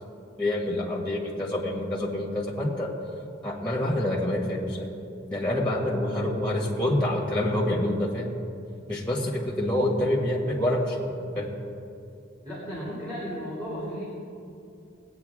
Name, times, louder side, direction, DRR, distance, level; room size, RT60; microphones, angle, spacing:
voice 1, 0.4-2.9 3.4-4.9 5.3-8.3 8.9-11.6, left 1 dB, 5° left, -2 dB, 1.6 m, -27 dB
voice 2, 12.4-14.1, equal, 20° right, -9 dB, 2.8 m, -35 dB
19.5 x 8.8 x 3.6 m, 2.5 s
head